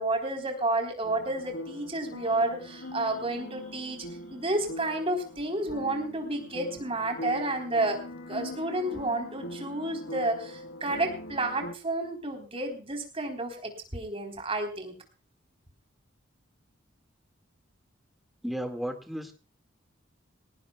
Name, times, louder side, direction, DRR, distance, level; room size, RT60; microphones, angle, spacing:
voice 1, 0.0-4.0 4.3-8.0 8.3-14.9, right 2 dB, 30° right, 3 dB, 3.9 m, -30 dB
sound 1, 1.0-11.7, left 1 dB, 80° left, 1.6 m, -42 dB
voice 2, 18.4-19.3, equal, ahead, 5 dB, 2.0 m, -33 dB
23.0 x 18.0 x 2.4 m, 0.33 s
head